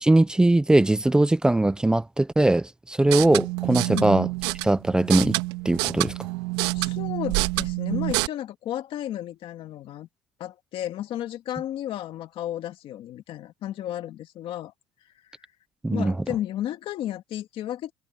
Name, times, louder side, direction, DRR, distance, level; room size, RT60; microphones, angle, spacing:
voice 1, 0.0-4.3 4.6-5.4 5.6-6.1 15.8-16.1, right 2 dB, 5° right, 0.6 m, -20 dB
sound 1, 3.0-8.3, right 22 dB, 80° right, 1.8 m, -27 dB
voice 2, 3.9-4.2 6.7-10.1 10.4-14.7 15.9-17.9, left 12 dB, 40° left, 2.0 m, -33 dB
cardioid pair, 150°, 14 cm